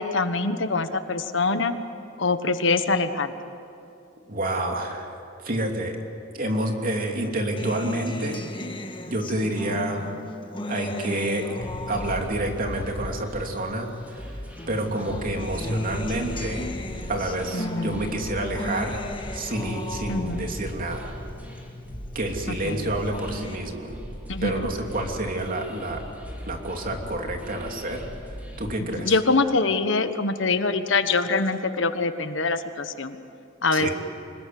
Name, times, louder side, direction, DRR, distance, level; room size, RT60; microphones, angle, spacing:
voice 1, 0.0-1.7 2.2-3.3 17.5-18.0 20.1-20.5 22.6-22.9 24.3-24.6 28.9-33.2 33.6-33.9, left 3 dB, 65° left, 10 dB, 1.3 m, -24 dB
voice 2, 4.3-5.1 5.4-6.0 6.3-8.5 9.1-10.1 10.7-11.6 11.9-14.4 14.7-16.7 17.1-19.0 19.3-21.1 22.1-24.0 24.4-26.1 26.5-29.2 33.7-33.9, right 1 dB, 45° right, 2 dB, 3.0 m, -29 dB
Acoustic guitar, 7.6-14.2 14.6-22.2 22.6-23.5, left 1 dB, 25° left, 1.6 m, -36 dB
sound 1, 11.6-28.7, equal, 10° right, 3.6 m, -39 dB
26.0 x 21.0 x 9.4 m, 2.7 s
head